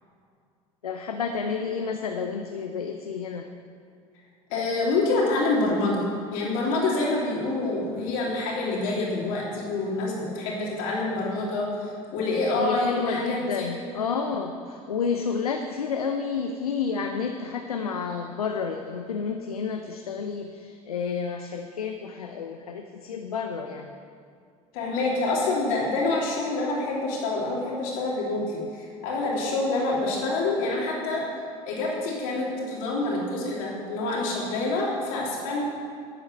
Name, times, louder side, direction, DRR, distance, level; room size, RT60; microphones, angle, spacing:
voice 1, 0.8-3.5 12.6-23.9, left 5 dB, 90° left, 5 dB, 0.6 m, -30 dB
voice 2, 4.5-6.0 6.3-13.7 24.7-31.2 31.6-35.6, left 2 dB, 70° left, -3 dB, 3.1 m, -27 dB
12.5 x 7.9 x 6.9 m, 2.3 s
hypercardioid pair, 70°, 18 cm